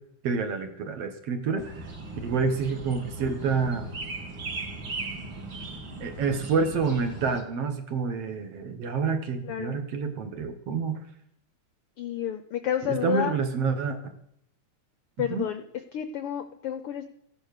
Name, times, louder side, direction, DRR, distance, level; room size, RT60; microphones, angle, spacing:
voice 1, 0.2-1.7 2.2-3.9 6.0-11.0 12.8-14.0 15.2-15.5, right 5 dB, 60° right, 6 dB, 2.2 m, -28 dB
sound 1, 1.6-7.4, right 2 dB, 40° right, 2.5 m, -38 dB
voice 2, 9.5-9.8 12.0-13.3 15.2-15.6 15.9-17.1, left 10 dB, 80° left, 10 dB, 1.2 m, -30 dB
15.0 x 11.0 x 6.7 m, 0.74 s
omnidirectional pair, 3.4 m